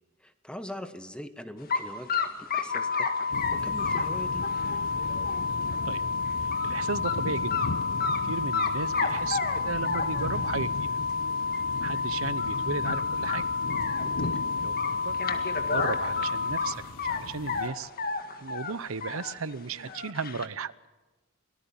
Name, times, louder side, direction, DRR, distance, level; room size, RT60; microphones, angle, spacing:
voice 1, 0.2-4.4 14.0-14.3, left 1 dB, 5° left, 10 dB, 1.2 m, -42 dB
sound 1, 1.7-1.8 2.1-5.9 6.3-6.7 7.0-7.2 7.5-8.2 8.5-10.5 11.1-11.2 11.5-11.6 11.9-12.0 12.4-12.6 12.9-14.4 14.8-17.2 17.5-19.3 19.7-20.5, left 5 dB, 45° left, 1.9 m, -32 dB
sound 2, 2.7-16.7, left 4 dB, 60° left, 1.6 m, -30 dB
sound 3, 3.3-17.7, left 2 dB, 75° left, 1.0 m, -39 dB
voice 2, 6.4-7.5 8.2-10.9 11.8-13.5 14.6-14.8 15.0-17.9 18.4-20.7, right 4 dB, 80° right, 16 dB, 0.8 m, -35 dB
24.5 x 19.0 x 7.2 m, 1.1 s
head